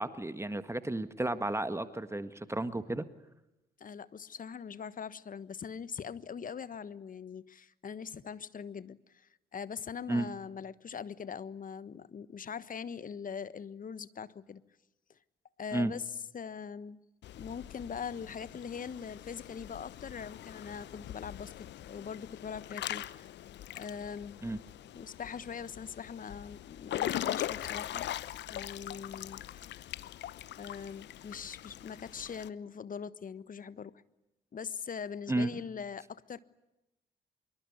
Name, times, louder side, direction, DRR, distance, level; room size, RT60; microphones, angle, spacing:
voice 1, 0.0-3.0 10.1-10.3 15.7-15.9 24.4-24.6 35.3-35.5, right 2 dB, 15° right, 11 dB, 1.6 m, -32 dB
voice 2, 3.8-14.6 15.6-17.0 17.4-23.0 23.8-24.4 24.9-28.1 28.5-29.4 30.6-33.9 34.5-36.4, left 6 dB, 40° left, 16 dB, 1.3 m, -42 dB
Water / Splash splatter / Drip, 17.2-32.5, left 12 dB, 60° left, 0.9 m, -41 dB
25.5 x 23.0 x 9.8 m, 0.94 s
figure-of-eight pair, 45°, 21 cm